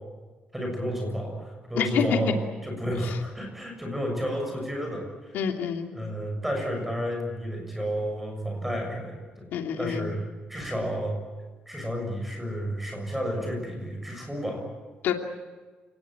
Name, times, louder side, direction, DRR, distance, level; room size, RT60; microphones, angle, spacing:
voice 1, 0.5-2.3 2.6-5.4 5.9-9.5 9.8-10.2 10.5-11.1 11.7-14.6, equal, 5° right, 2 dB, 6.9 m, -31 dB
voice 2, 1.8-2.2 5.3-5.9 9.5-10.2 15.0-15.1, left 8 dB, 85° left, 3 dB, 2.8 m, -27 dB
29.0 x 19.0 x 9.0 m, 1.4 s
cardioid pair, 180°, 3 cm